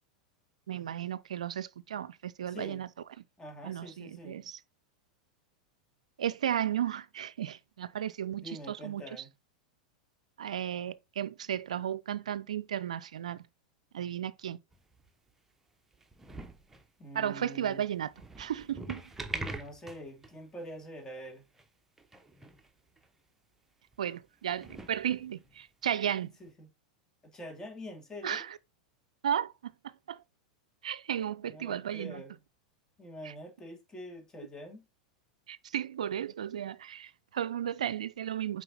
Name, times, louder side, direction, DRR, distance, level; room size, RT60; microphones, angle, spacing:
voice 1, 0.7-2.9 3.6-4.6 6.2-9.0 10.4-13.4 13.9-14.6 17.1-18.1 18.4-19.0 24.0-26.3 28.2-28.6 29.2-30.2 30.8-32.2 33.2-33.3 35.5-38.6, right 10 dB, 70° right, 0.5 m, -34 dB
voice 2, 2.5-2.8 3.4-4.4 8.4-9.3 17.0-17.8 19.3-21.4 26.4-26.7 27.2-28.4 31.4-32.4 33.0-34.9, equal, 20° left, 2.8 m, -45 dB
sound 1, 14.7-15.3 15.9-16.9 18.0-20.4 20.7-20.8 21.2-21.3 21.6-21.7 22.0-22.7 23.0-23.1 23.9-24.0 24.5-25.6 26.5-26.6, right 2 dB, 10° right, 1.2 m, -44 dB
7.7 x 5.0 x 4.1 m
figure-of-eight pair, 90°, 4 cm